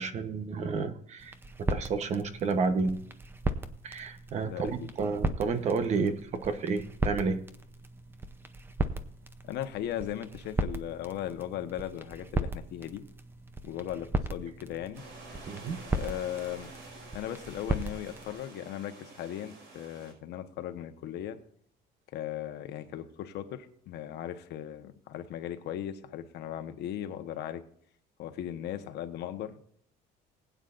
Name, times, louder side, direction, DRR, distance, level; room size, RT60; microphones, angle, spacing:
voice 1, 0.0-1.3 1.7-3.0 3.8-7.4 15.5-15.8, right 4 dB, 40° right, 9 dB, 1.1 m, -30 dB
sound 1, 1.2-18.4, right 2 dB, 10° right, 0.7 m, -37 dB
voice 2, 4.4-4.9 9.4-13.0 13.6-15.0 15.9-16.7 17.1-21.4 22.1-27.6 28.2-29.6, left 11 dB, 70° left, 8 dB, 1.2 m, -37 dB
sound 2, 14.9-20.1, right 3 dB, 75° right, 5.5 m, -49 dB
20.5 x 9.3 x 2.6 m, 0.65 s
cardioid pair, 170°, 18 cm